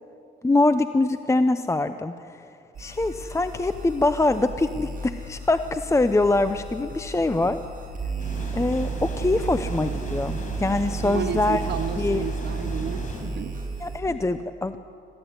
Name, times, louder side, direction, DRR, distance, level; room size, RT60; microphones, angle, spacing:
voice 1, 0.4-2.4 2.8-7.6 8.5-11.6 12.0-12.2 13.8-14.8, left 2 dB, 15° left, 10 dB, 0.7 m, -24 dB
sound 1, 2.7-14.0, right 4 dB, 45° right, 6.8 m, -33 dB
sound 2, 8.2-13.2, left 2 dB, 40° left, 6.0 m, -37 dB
voice 2, 11.0-13.5, right 7 dB, 60° right, 9 dB, 1.1 m, -32 dB
20.5 x 15.0 x 9.6 m, 2.6 s
cardioid pair, 90°, 20 cm